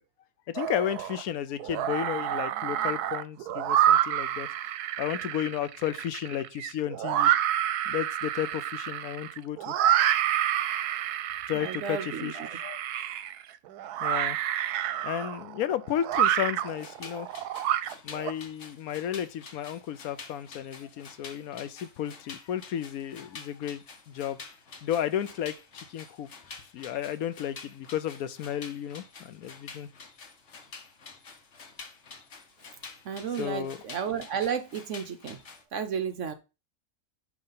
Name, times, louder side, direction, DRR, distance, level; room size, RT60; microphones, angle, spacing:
voice 1, 0.5-4.5 5.0-7.3 7.9-9.7 11.5-12.8 14.0-14.4 15.0-17.3 18.0-24.4 24.8-29.9 33.4-33.8, left 10 dB, 70° left, 1.0 m, -33 dB
sound 1, 0.6-1.2 1.6-18.3, right 11 dB, 85° right, 1.2 m, -28 dB
voice 2, 11.5-12.6 33.0-35.4 35.7-36.3, right 7 dB, 60° right, 1.0 m, -33 dB
sound 2, 16.7-35.6, left 4 dB, 50° left, 1.3 m, -48 dB
9.0 x 3.1 x 5.6 m
omnidirectional pair, 1.6 m